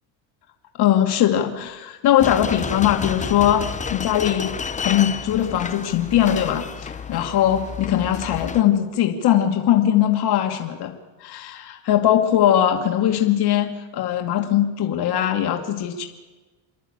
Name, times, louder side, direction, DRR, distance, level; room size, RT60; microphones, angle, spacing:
voice 1, 0.8-4.5 4.8-10.9 11.2-16.0, left 11 dB, 50° left, 3 dB, 2.4 m, -20 dB
sound 1, 2.2-8.6, left 5 dB, 15° left, 0.8 m, -31 dB
28.0 x 11.0 x 8.8 m, 1.2 s
supercardioid pair, 115°, 48 cm